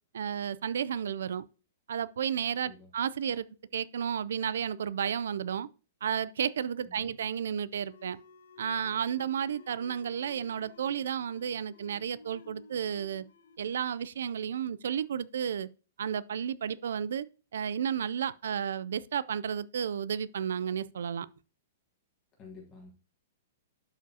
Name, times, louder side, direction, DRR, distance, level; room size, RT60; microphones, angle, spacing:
voice 1, 0.1-1.4 1.9-3.5 3.7-5.7 6.0-8.2 8.6-13.2 13.6-15.7 16.0-17.3 17.5-21.3, right 8 dB, 80° right, 0.3 m, -32 dB
sound 1, 7.8-15.0, left 4 dB, 85° left, 1.2 m, -55 dB
voice 2, 22.4-22.9, left 4 dB, 20° left, 1.2 m, -50 dB
12.0 x 5.0 x 2.7 m
hypercardioid pair, 170°, 0 cm